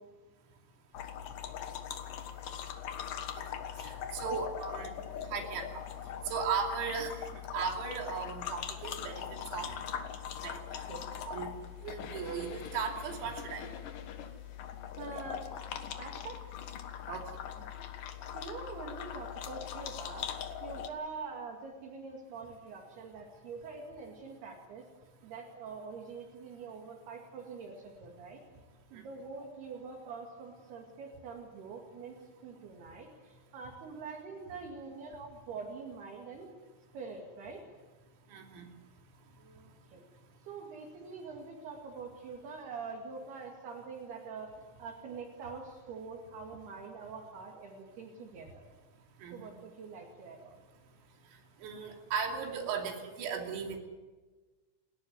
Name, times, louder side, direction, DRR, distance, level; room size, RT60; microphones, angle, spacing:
sound 1, 0.9-20.9, left 9 dB, 70° left, 2.1 m, -41 dB
voice 1, 3.8-4.9 5.3-5.8 6.3-9.2 9.5-9.7 10.4-10.6 11.3-11.5 11.8-13.7 17.1-17.3 38.3-38.7 49.2-49.5 51.6-53.8, right 6 dB, 90° right, 2 dB, 5.6 m, -36 dB
voice 2, 15.0-15.4 16.0-16.4 17.6-17.7 18.3-20.3 20.6-24.8 25.2-28.4 28.9-32.2 32.4-36.5 36.9-37.6 39.4-40.0 40.5-44.5 44.8-48.6 49.3-50.5, right 4 dB, 55° right, 0 dB, 3.9 m, -45 dB
29.5 x 13.0 x 9.6 m, 1.3 s
omnidirectional pair, 5.9 m